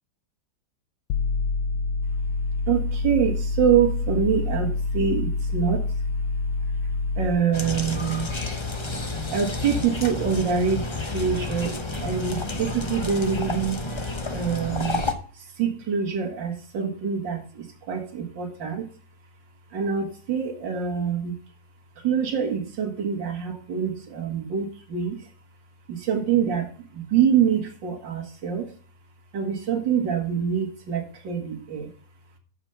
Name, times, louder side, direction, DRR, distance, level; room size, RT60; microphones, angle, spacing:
sound 1, 1.1-7.3, left 3 dB, 70° left, 1.0 m, -26 dB
voice 1, 2.7-5.8 7.2-8.3 9.3-13.8 14.3-15.0 15.6-18.9 19.7-21.4 22.0-25.2 25.9-28.7 29.3-31.9, right 7 dB, 60° right, 3 dB, 2.6 m, -25 dB
sound 2, 7.5-15.1, left 2 dB, 50° left, 0.3 m, -30 dB
13.0 x 5.3 x 5.7 m, 0.42 s
omnidirectional pair, 2.3 m